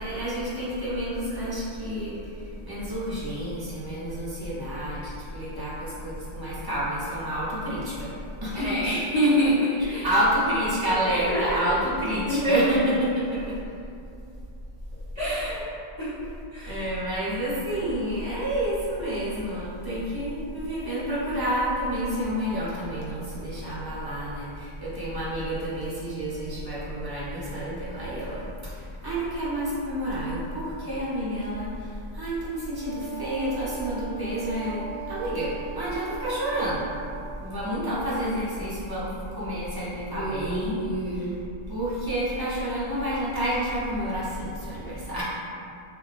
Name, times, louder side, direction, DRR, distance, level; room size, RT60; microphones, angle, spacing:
voice 1, 0.0-8.1 8.4-8.7 9.8-13.6 16.6-36.9 37.4-40.8 41.1-41.3 41.7-45.2, equal, 30° right, -10 dB, 0.5 m, -29 dB
voice 2, 8.5-10.1 10.8-11.6 12.1-12.7 15.1-15.6 16.0-16.2 16.5-16.8 40.1-41.2, equal, 30° left, -14 dB, 0.7 m, -26 dB
Wind instrument woodwind instrument, 32.8-37.5, right 6 dB, 75° right, 0.8 m, -39 dB
2.8 x 2.2 x 2.3 m, 2.5 s
omnidirectional pair, 1.0 m